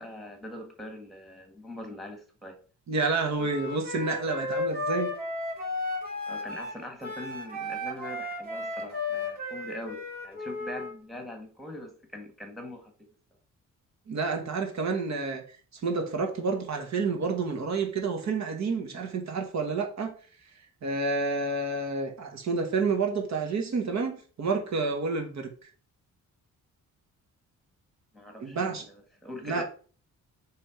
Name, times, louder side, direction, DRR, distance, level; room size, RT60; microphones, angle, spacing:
voice 1, 0.0-2.6 6.3-13.1 28.1-29.6, left 1 dB, ahead, 1.7 m, -42 dB
voice 2, 2.9-5.1 14.1-15.4 15.7-20.1 20.8-25.5 28.4-28.8 29.4-29.6, right 4 dB, 60° right, 1.5 m, -29 dB
Wind instrument woodwind instrument, 3.4-10.9, left 2 dB, 30° right, 2.9 m, -34 dB
6.2 x 3.5 x 5.0 m
cardioid pair, 130°, 32 cm